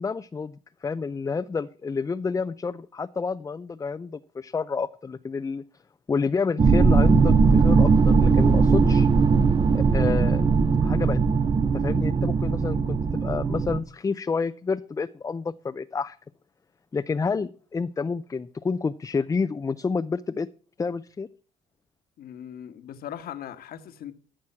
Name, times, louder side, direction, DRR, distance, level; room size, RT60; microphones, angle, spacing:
voice 1, 0.0-5.6 6.1-9.1 9.7-10.5 10.8-11.2 11.7-16.2 16.9-20.5 20.8-21.3, left 4 dB, 20° left, 0.5 m, -29 dB
sound 1, 6.6-13.8, right 4 dB, 25° right, 0.8 m, -19 dB
voice 2, 22.2-24.1, left 10 dB, 60° left, 1.4 m, -39 dB
14.5 x 6.2 x 5.7 m
cardioid pair, 110°, 17 cm